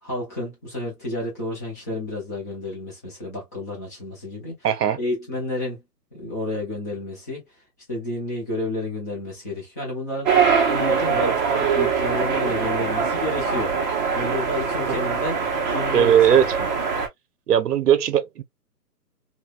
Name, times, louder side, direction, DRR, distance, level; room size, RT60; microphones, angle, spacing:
voice 1, 0.0-4.6 4.9-5.8 6.1-7.4 7.9-13.7 14.1-15.4 15.7-16.1 16.6-16.7, left 2 dB, 10° left, 0.6 m, -30 dB
voice 2, 4.6-5.0 15.9-16.5 17.5-18.4, right 9 dB, 70° right, 0.8 m, -18 dB
sound 1, 10.3-17.1, right 6 dB, 30° right, 0.9 m, -23 dB
3.4 x 2.4 x 2.4 m
hypercardioid pair, 160°, 48 cm